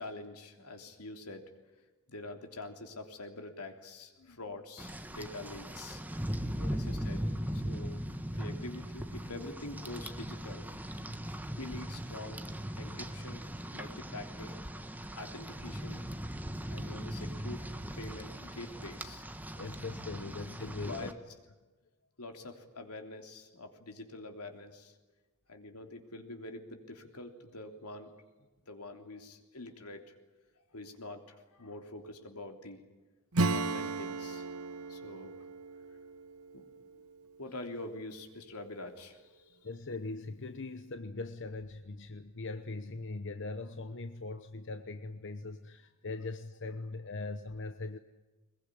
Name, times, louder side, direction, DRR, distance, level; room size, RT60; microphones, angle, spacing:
voice 1, 0.0-1.5 2.1-6.0 6.7-8.0 8.3-10.7 11.6-12.4 12.8-14.6 15.1-16.0 16.7-17.7 18.0-19.3 20.9-21.1 22.2-25.0 25.5-28.1 28.7-30.0 30.7-32.8 33.5-34.5 34.9-35.3 36.5-36.6 37.4-39.6, left 2 dB, 85° left, 5 dB, 3.4 m, -45 dB
Rain, 4.8-21.1, equal, 10° right, 1.3 m, -39 dB
voice 2, 19.6-20.9 39.6-48.0, left 3 dB, 55° left, 9 dB, 1.0 m, -41 dB
Acoustic guitar / Strum, 33.3-37.6, right 3 dB, 70° right, 1.0 m, -35 dB
22.0 x 21.5 x 10.0 m, 1.2 s
head